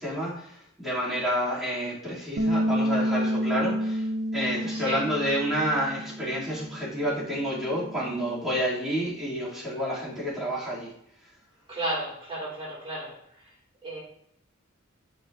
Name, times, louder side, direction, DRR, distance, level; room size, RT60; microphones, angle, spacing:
voice 1, 0.0-4.0 4.3-10.9, equal, ahead, -10 dB, 2.8 m, -29 dB
Bass guitar, 2.4-8.6, equal, 65° right, 0.6 m, -30 dB
voice 2, 4.6-5.0 11.7-13.2 13.8-14.0, right 1 dB, 25° right, -6 dB, 2.4 m, -33 dB
10.5 x 5.0 x 2.6 m, 0.74 s
head